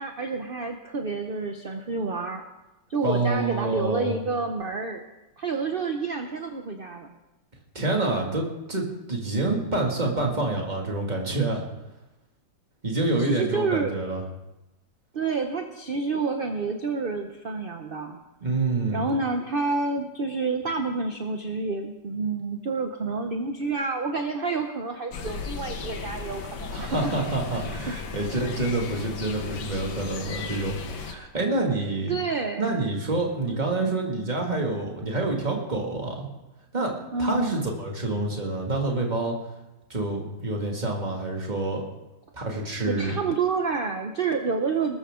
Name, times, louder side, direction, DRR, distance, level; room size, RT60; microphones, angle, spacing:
voice 1, 0.0-2.4 2.9-5.0 5.4-7.2 13.2-14.0 15.1-18.2 18.9-27.1 27.9-28.0 32.1-32.8 33.4-33.6 37.1-37.7 42.9-45.0, right 4 dB, 50° right, 5 dB, 0.7 m, -29 dB
voice 2, 3.0-4.1 7.7-11.6 12.8-14.2 18.4-19.1 26.7-32.2 32.6-36.3 36.7-36.9 37.2-39.3 39.9-41.8 42.3-43.2, right 2 dB, 25° right, 0 dB, 2.2 m, -27 dB
sound 1, 25.1-31.1, left 5 dB, 70° left, 1.8 m, -35 dB
19.5 x 13.0 x 3.7 m, 1.0 s
omnidirectional pair, 2.0 m